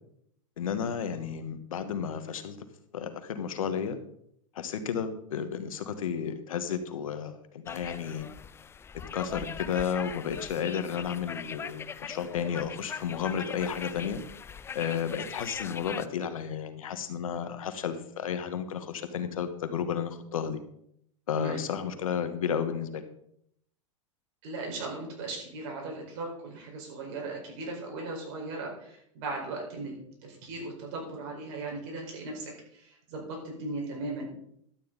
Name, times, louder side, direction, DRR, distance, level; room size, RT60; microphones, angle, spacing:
voice 1, 0.6-2.6 2.9-4.0 4.5-8.3 9.1-14.2 14.7-20.6 21.3-23.0, left 7 dB, 90° left, 9 dB, 1.3 m, -32 dB
sound 1, 7.7-16.1, left 6 dB, 15° left, 0.3 m, -41 dB
voice 2, 24.4-34.3, right 2 dB, 65° right, 0 dB, 4.9 m, -38 dB
12.0 x 8.8 x 4.0 m, 0.70 s
hypercardioid pair, 115°, 17 cm